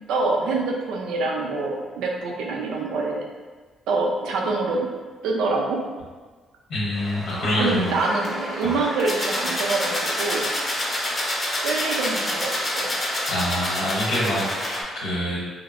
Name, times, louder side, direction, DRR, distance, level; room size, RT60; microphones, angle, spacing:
voice 1, 0.0-3.2 3.9-4.9 5.2-5.9 7.6-10.5 11.6-13.0, right 3 dB, 85° right, -1 dB, 0.4 m, -25 dB
voice 2, 6.7-7.9 8.6-8.7 13.3-15.6, equal, 85° left, -6 dB, 1.0 m, -26 dB
sound 1, 7.0-14.8, left 1 dB, 30° left, 0.6 m, -28 dB
2.9 x 2.0 x 2.5 m, 1.4 s
cardioid pair, 90°, 0 cm